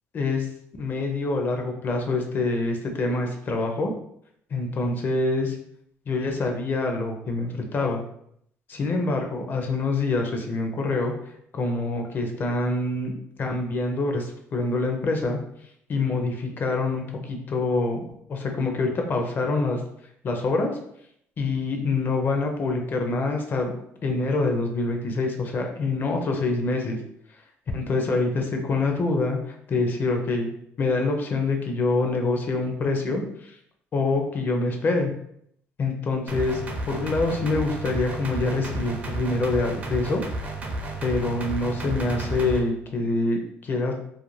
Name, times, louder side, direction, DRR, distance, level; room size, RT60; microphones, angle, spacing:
voice 1, 0.1-0.5 0.8-3.9 4.5-5.6 6.1-8.0 8.7-11.1 11.5-15.4 15.9-19.8 20.2-20.7 21.4-23.7 24.0-27.0 27.7-30.5 30.8-33.6 33.9-35.1 35.8-36.6 36.9-40.2 41.0-43.9, left 3 dB, 40° left, 3 dB, 0.5 m, -25 dB
sound 1, 36.3-42.6, right 1 dB, 30° right, 0.5 m, -32 dB
2.4 x 2.2 x 3.0 m, 0.71 s
cardioid pair, 120°, 5 cm